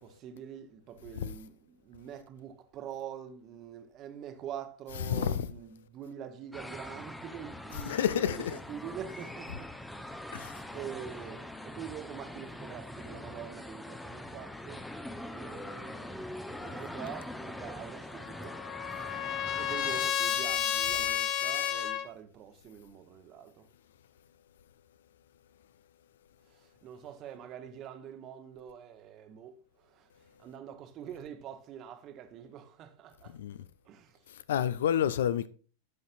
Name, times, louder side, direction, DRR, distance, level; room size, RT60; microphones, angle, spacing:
voice 1, 0.0-10.4 10.7-14.9 15.3-18.7 19.5-23.7 26.5-33.4 33.8-34.2, right 9 dB, 35° right, 1.0 m, -45 dB
voice 2, 5.1-5.5 7.7-8.6 10.3-10.6 33.3-33.6 34.3-35.5, left 9 dB, 60° left, 0.4 m, -30 dB
sound 1, 6.5-20.1, left 1 dB, 5° left, 0.6 m, -43 dB
Trumpet, 18.2-22.1, left 10 dB, 40° left, 0.9 m, -31 dB
11.5 x 5.4 x 2.5 m
figure-of-eight pair, 90°, 0 cm